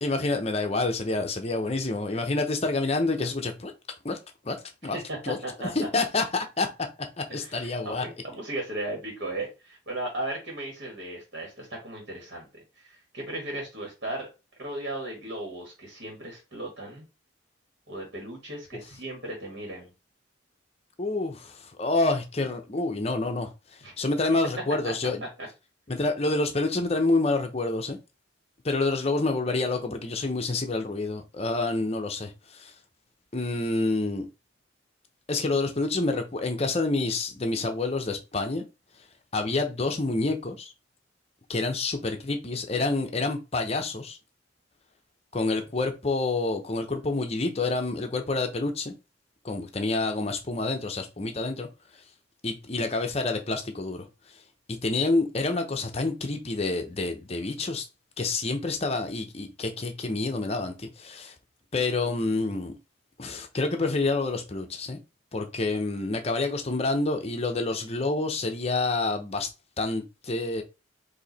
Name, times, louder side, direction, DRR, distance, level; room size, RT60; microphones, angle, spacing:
voice 1, 0.0-3.7 4.0-4.2 4.4-4.6 4.8-5.0 5.2-5.4 5.7-6.7 7.2-8.0 21.0-25.3 25.9-28.0 28.6-32.7 33.3-34.3 35.3-38.7 39.3-40.7 41.5-44.2 45.3-48.9 49.4-51.7 52.4-54.1 54.7-57.9 58.2-61.3 61.7-62.7 63.2-65.0 65.3-69.5 69.8-70.6, left 3 dB, 30° left, 0.7 m, -28 dB
voice 2, 4.9-5.9 7.3-12.5 12.7-14.3 14.6-17.1 17.9-19.9 23.8-23.9 24.8-24.9, right 1 dB, 55° right, 1.7 m, -36 dB
4.7 x 2.8 x 4.1 m
head